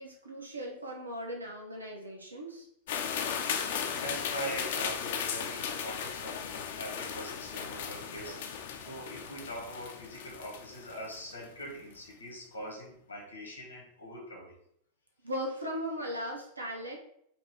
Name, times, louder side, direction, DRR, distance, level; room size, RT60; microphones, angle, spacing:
voice 1, 0.0-2.7 15.2-17.0, equal, 80° right, 0 dB, 0.9 m, -38 dB
sound 1, 2.9-11.5, left 7 dB, 55° left, 0.5 m, -36 dB
voice 2, 3.4-14.5, equal, 85° left, -1 dB, 1.6 m, -42 dB
5.1 x 2.9 x 3.1 m, 0.71 s
figure-of-eight pair, 90°, 0 cm